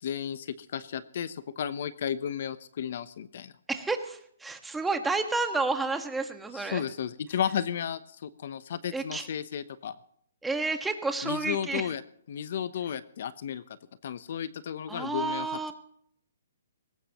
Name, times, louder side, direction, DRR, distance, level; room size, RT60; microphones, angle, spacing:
voice 1, 0.0-3.5 6.5-10.0 11.2-12.0 12.3-13.8 14.0-15.5, left 8 dB, 55° left, 15 dB, 0.8 m, -33 dB
voice 2, 3.7-6.8 8.9-9.3 10.4-11.9 14.9-15.7, right 3 dB, 5° right, 6 dB, 1.5 m, -30 dB
20.5 x 18.5 x 3.0 m, 0.66 s
hypercardioid pair, 155°, 0 cm